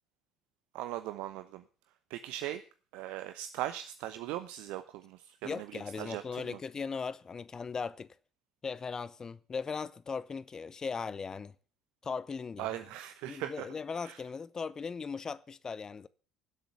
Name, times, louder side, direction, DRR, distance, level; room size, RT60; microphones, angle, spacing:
voice 1, 0.7-1.6 2.1-2.6 2.9-6.6 12.6-13.7 14.0-14.2, right 13 dB, 60° right, 0.9 m, -39 dB
voice 2, 5.4-8.2 8.6-11.5 12.0-12.7 13.3-16.1, left 5 dB, 30° left, 0.7 m, -38 dB
17.5 x 8.1 x 6.9 m
figure-of-eight pair, 60°, 2 cm